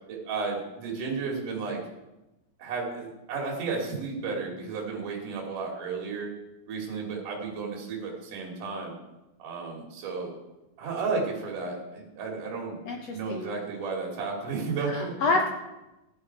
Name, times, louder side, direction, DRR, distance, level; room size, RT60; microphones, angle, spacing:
voice 1, 0.1-1.8 2.6-6.3 6.7-8.9 9.4-10.3 10.8-12.8 13.1-15.1, right 4 dB, 60° right, -1 dB, 4.0 m, -33 dB
voice 2, 12.8-13.6 14.9-15.5, left 3 dB, 80° left, 2 dB, 1.4 m, -28 dB
15.0 x 10.5 x 4.7 m, 0.98 s
omnidirectional pair, 4.4 m